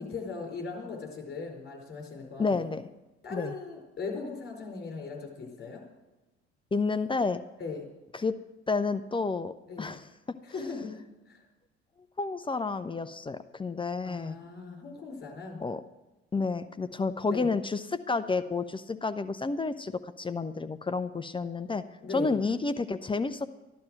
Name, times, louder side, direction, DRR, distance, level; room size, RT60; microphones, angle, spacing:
voice 1, 0.0-2.6 3.2-5.8 7.6-7.9 9.7-9.9 10.5-11.4 14.0-15.6 17.3-17.5 22.0-22.4, left 4 dB, 30° left, 1 dB, 4.8 m, -38 dB
voice 2, 2.4-2.9 3.3-3.5 6.7-7.4 8.1-8.3 8.7-10.1 12.2-14.4 15.6-15.8 16.3-21.8 22.1-23.5, left 4 dB, 15° left, 11 dB, 0.7 m, -30 dB
13.0 x 12.0 x 6.3 m, 1.1 s
figure-of-eight pair, 55°, 34 cm